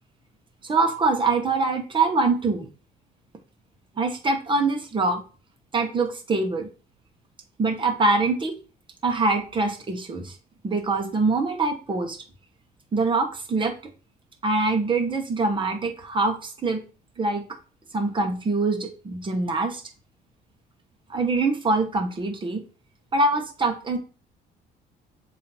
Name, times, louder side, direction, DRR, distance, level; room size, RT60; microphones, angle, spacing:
voice 1, 0.6-2.7 4.0-5.2 5.7-6.7 7.6-8.5 9.0-10.4 10.6-12.2 12.9-13.7 14.4-16.8 17.2-17.5 17.9-19.8 21.1-22.6 23.1-24.0, right 3 dB, 30° right, 4 dB, 1.5 m, -24 dB
7.6 x 3.2 x 4.5 m, 0.36 s
cardioid pair, 110°, 17 cm